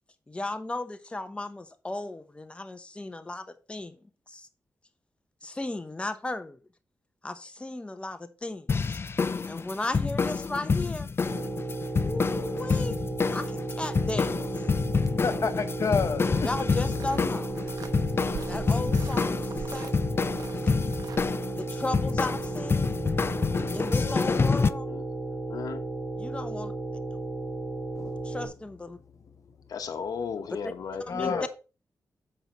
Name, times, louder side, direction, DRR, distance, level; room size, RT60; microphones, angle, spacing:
voice 1, 0.3-4.0 4.3-4.5 5.4-6.6 7.2-9.0 9.4-11.1 12.0-13.0 13.3-14.4 16.4-17.5 18.5-20.0 21.6-23.0 23.7-24.9 26.2-26.7 27.1-27.2 28.2-29.0 30.6-30.7 31.1-31.5, left 2 dB, 20° left, 0.8 m, -35 dB
sound 1, 8.7-24.7, left 4 dB, 40° left, 0.4 m, -28 dB
sound 2, 11.2-28.5, right 2 dB, 10° right, 3.4 m, -34 dB
voice 2, 15.2-16.5 17.0-17.2 28.0-28.2 31.1-31.5, left 5 dB, 60° left, 1.0 m, -29 dB
sound 3, 15.9-21.2, right 5 dB, 80° right, 0.9 m, -43 dB
voice 3, 25.5-25.8 29.7-31.5, left 5 dB, 85° left, 0.9 m, -34 dB
7.8 x 5.4 x 4.2 m
cardioid pair, 75°, 6 cm